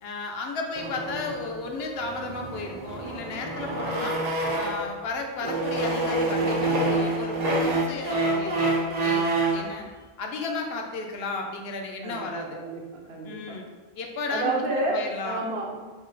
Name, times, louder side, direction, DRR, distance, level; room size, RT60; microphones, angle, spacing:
voice 1, 0.0-4.2 4.5-8.5 9.0-9.9 10.2-12.6 13.2-13.7 14.0-14.6 14.9-15.5, left 3 dB, 80° left, 2 dB, 0.8 m, -34 dB
sound 1, 0.8-5.0 5.4-9.7, right 2 dB, 50° right, 0.6 m, -27 dB
voice 2, 12.0-13.6 14.3-15.0 15.2-15.8, right 2 dB, 75° right, 0 dB, 0.9 m, -30 dB
3.7 x 2.1 x 3.8 m, 1.3 s
omnidirectional pair, 1.0 m